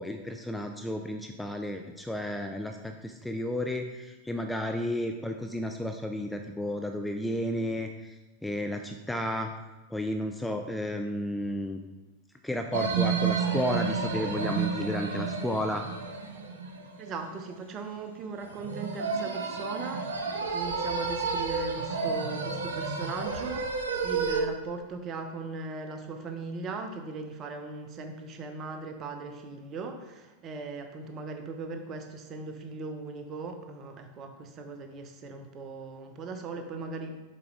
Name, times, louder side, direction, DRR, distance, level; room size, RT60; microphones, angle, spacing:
voice 1, 0.0-9.5 9.9-11.8 12.4-15.8, left 1 dB, 5° left, 4 dB, 0.4 m, -32 dB
sound 1, 12.7-17.1 18.4-24.4, right 5 dB, 65° right, 0.7 m, -31 dB
voice 2, 17.0-37.3, right 4 dB, 30° right, 6 dB, 0.8 m, -39 dB
6.8 x 4.9 x 3.2 m, 1.2 s
figure-of-eight pair, 90°, 0 cm